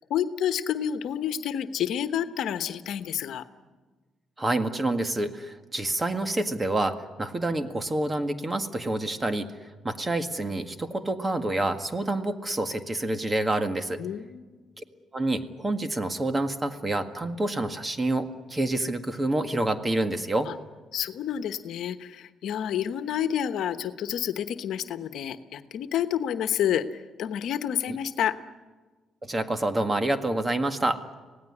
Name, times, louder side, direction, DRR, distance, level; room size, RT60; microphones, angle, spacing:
voice 1, 0.1-3.4 14.0-14.6 20.5-20.6 20.9-26.8 27.2-28.4, left 10 dB, 75° left, 10 dB, 1.1 m, -29 dB
voice 2, 4.4-9.5 9.8-14.0 14.8-14.9 15.1-20.5 27.9-28.0 29.2-31.0, right 2 dB, 20° right, 8 dB, 1.8 m, -28 dB
25.5 x 17.5 x 10.0 m, 1.3 s
cardioid pair, 90°, 0 cm